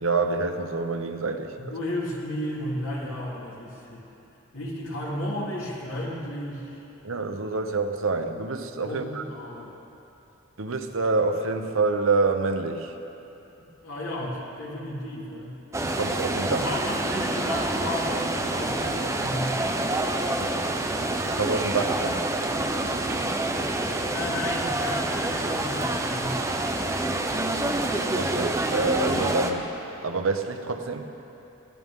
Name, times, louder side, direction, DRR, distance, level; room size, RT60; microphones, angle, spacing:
voice 1, 0.0-1.5 7.0-9.2 10.6-12.9 15.8-16.7 20.4-20.5 21.3-22.2 28.1-29.7 30.0-31.1, right 3 dB, 70° right, 6 dB, 0.9 m, -27 dB
voice 2, 1.6-4.0 4.5-6.8 8.8-9.8 13.8-15.5 16.4-19.8 22.8-26.4, left 1 dB, 85° left, -5 dB, 3.3 m, -34 dB
sound 1, 15.7-29.5, right 2 dB, 15° right, 0.7 m, -27 dB
20.0 x 15.0 x 3.7 m, 2.9 s
head